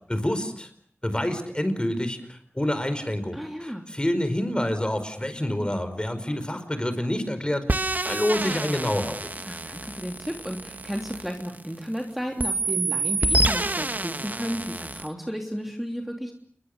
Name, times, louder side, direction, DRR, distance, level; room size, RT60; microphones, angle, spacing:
voice 1, 0.1-0.7 1.0-9.3, left 1 dB, 20° left, 9 dB, 5.0 m, -27 dB
voice 2, 3.3-3.8 9.4-16.3, equal, 5° right, 2 dB, 3.1 m, -33 dB
sound 1, 7.7-12.0 12.4-15.1, right 2 dB, 40° right, 1.2 m, -28 dB
29.5 x 22.0 x 6.8 m, 0.62 s
wide cardioid pair, 65°, 5 cm